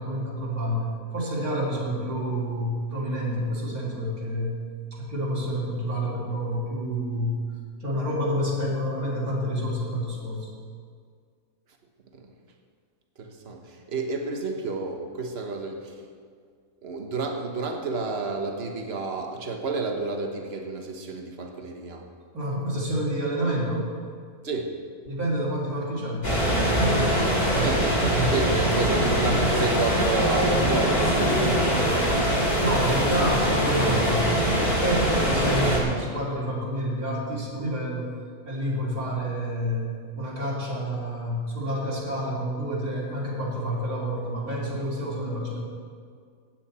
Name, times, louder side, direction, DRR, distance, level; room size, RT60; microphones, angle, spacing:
voice 1, 0.0-4.6 5.0-7.4 7.8-10.5 22.3-23.9 25.1-26.3 26.6-27.4 28.0-28.3 32.6-38.1 38.5-45.6, equal, 85° right, -7 dB, 3.6 m, -28 dB
voice 2, 13.2-16.0 16.8-22.1 24.4-24.8 27.5-32.2, right 3 dB, 45° right, 3 dB, 1.4 m, -31 dB
sound 1, 26.2-35.8, equal, 30° left, 2.5 m, -23 dB
15.5 x 9.2 x 4.3 m, 2.1 s
omnidirectional pair, 1.5 m